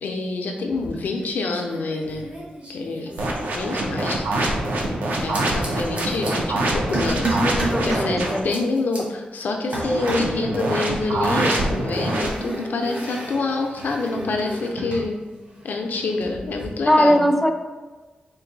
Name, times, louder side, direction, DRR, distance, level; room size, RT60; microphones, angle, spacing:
voice 1, 0.0-2.3 2.7-3.1 3.5-4.3 5.2-15.2 15.6-17.3, left 3 dB, 75° left, 3 dB, 0.5 m, -27 dB
sound 1, 0.7-1.2 1.5-4.1 5.1-6.3 6.9-7.8 8.2-9.0 9.7-10.4 11.1-15.1 15.4-16.6, right 1 dB, 55° right, 1.4 m, -32 dB
sound 2, 3.2-8.4 9.8-12.3, right 1 dB, 75° right, 0.6 m, -25 dB
voice 2, 7.4-8.6 16.9-17.5, equal, ahead, 4 dB, 0.3 m, -20 dB
3.9 x 2.6 x 3.9 m, 1.3 s
wide cardioid pair, 150°, 3 cm